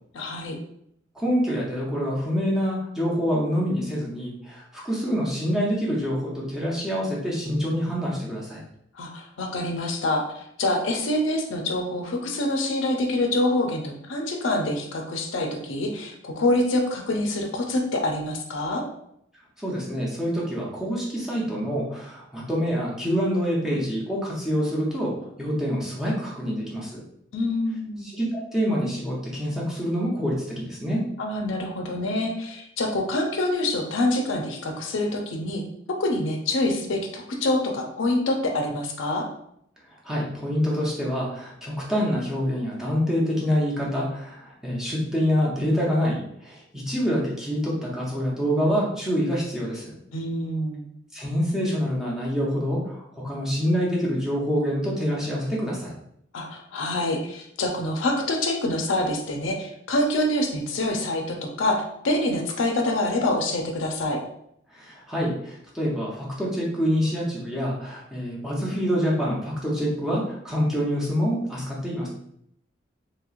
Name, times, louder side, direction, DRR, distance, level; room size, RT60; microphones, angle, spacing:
voice 1, 0.1-0.6 8.9-18.8 27.3-28.0 31.2-35.6 36.0-39.3 50.1-50.8 56.3-64.2, left 1 dB, 85° left, 3 dB, 0.5 m, -26 dB
voice 2, 1.1-8.6 19.6-27.0 28.0-31.0 40.0-50.0 51.1-55.9 64.7-72.1, equal, 5° right, -5 dB, 0.7 m, -26 dB
2.9 x 2.8 x 2.4 m, 0.73 s
head